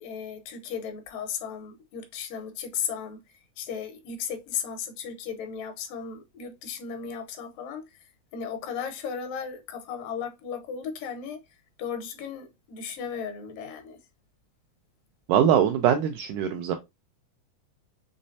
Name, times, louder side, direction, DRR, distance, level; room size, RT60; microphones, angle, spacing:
voice 1, 0.0-8.0 8.3-11.4 11.8-14.0, left 7 dB, 80° left, 2.3 m, -35 dB
voice 2, 15.3-16.8, right 9 dB, 80° right, 1.8 m, -22 dB
6.3 x 3.1 x 2.7 m
omnidirectional pair, 4.0 m